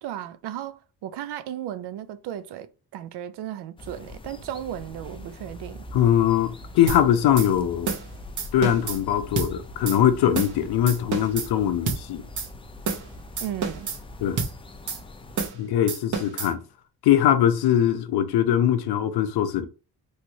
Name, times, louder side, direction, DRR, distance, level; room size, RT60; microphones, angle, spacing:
voice 1, 0.0-5.9 13.4-13.9, right 11 dB, 90° right, 0.5 m, -35 dB
sound 1, 3.8-15.5, left 1 dB, 15° left, 0.3 m, -43 dB
voice 2, 5.9-7.9 8.5-12.2 14.2-14.4 15.5-16.6 17.0-19.7, left 10 dB, 75° left, 0.6 m, -21 dB
sound 2, 6.9-7.0 7.4-7.5 7.9-8.1 8.4-9.0 9.4-9.5 9.9-10.0 10.3-10.6 10.9-11.5 11.9-12.0 12.4-12.5 12.8-13.1 13.4-14.0 14.4-14.5 14.9-15.0 15.4-15.6 15.9-16.5, right 5 dB, 50° right, 0.8 m, -29 dB
3.2 x 2.9 x 2.6 m
cardioid pair, 125°, 38 cm